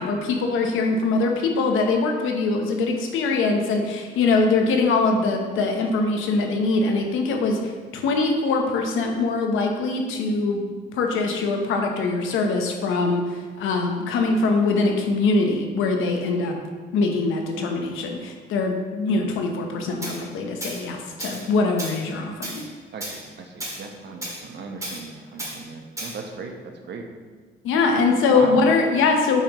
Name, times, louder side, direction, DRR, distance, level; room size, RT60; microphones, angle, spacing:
voice 1, 0.0-7.6 7.9-10.7 11.0-13.2 13.6-16.6 16.9-22.6 27.6-29.4, left 3 dB, 90° left, 3 dB, 1.0 m, -22 dB
Tools, 20.0-20.2 20.6-20.8 21.2-21.5 21.8-22.0 22.4-22.6 23.0-23.2 23.6-23.8 24.2-24.4 24.8-25.0 25.4-25.6 26.0-26.2, right 1 dB, 15° right, 1.9 m, -33 dB
voice 2, 22.9-26.5 26.9-27.1 28.3-28.6, right 4 dB, 60° right, 3 dB, 1.0 m, -36 dB
8.3 x 5.1 x 3.1 m, 1.5 s
cardioid pair, 90°, 20 cm